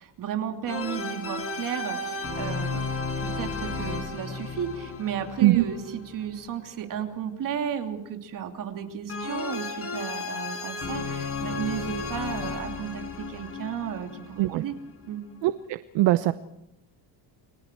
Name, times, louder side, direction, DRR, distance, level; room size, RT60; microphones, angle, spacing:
voice 1, 0.0-2.9 3.2-14.7 15.0-15.2, right 8 dB, 40° right, 4 dB, 2.9 m, -34 dB
sound 1, 0.7-6.6 9.1-14.9, left 4 dB, 30° left, 4.9 m, -34 dB
voice 2, 15.4-16.3, right 16 dB, 65° right, 12 dB, 0.9 m, -21 dB
29.5 x 23.0 x 4.6 m, 0.84 s
cardioid pair, 160°, 47 cm